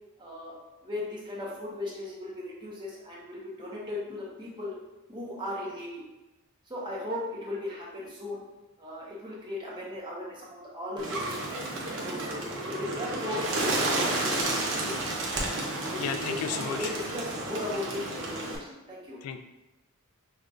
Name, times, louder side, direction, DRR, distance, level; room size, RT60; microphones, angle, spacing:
voice 1, 0.2-0.6 0.8-4.8 5.1-6.0 6.7-8.4 8.8-11.4 11.9-15.0 15.4-19.2, left 1 dB, 20° right, -5 dB, 0.9 m, -37 dB
Bird, 11.0-18.6, right 2 dB, 60° right, 0.7 m, -31 dB
voice 2, 15.6-16.9 19.2-19.4, left 7 dB, 85° left, 7 dB, 0.3 m, -34 dB
5.5 x 2.4 x 2.5 m, 1.0 s
head